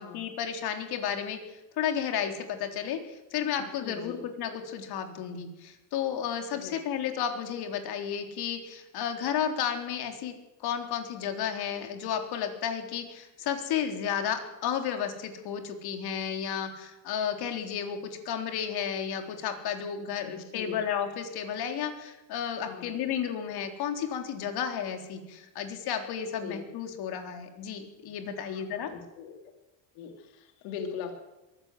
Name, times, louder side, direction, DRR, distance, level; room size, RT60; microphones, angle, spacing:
voice 1, 0.0-10.3 10.6-28.9, left 8 dB, 60° left, 5 dB, 3.9 m, -32 dB
voice 2, 3.8-4.2 6.5-6.8 20.3-20.8 22.6-23.0 26.4-26.6 28.5-29.3 29.9-31.1, left 7 dB, 85° left, 4 dB, 3.2 m, -40 dB
22.5 x 16.0 x 7.8 m, 1.0 s
cardioid pair, 135°, 44 cm